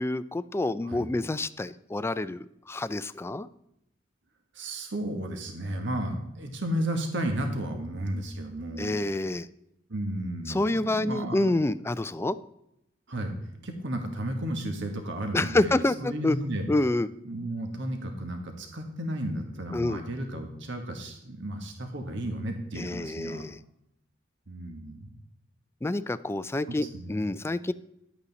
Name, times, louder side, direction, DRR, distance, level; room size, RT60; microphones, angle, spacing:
voice 1, 0.0-3.5 8.8-9.5 10.5-12.4 15.3-16.4 16.7-17.1 19.7-20.0 22.8-23.6 25.8-27.7, left 2 dB, 15° left, 15 dB, 0.3 m, -28 dB
voice 2, 4.5-8.9 9.9-11.4 13.1-13.3 13.6-16.6 17.2-23.4 24.5-25.1 26.7-27.1, right 1 dB, 70° right, 4 dB, 1.5 m, -33 dB
11.0 x 8.3 x 4.1 m, 0.80 s
head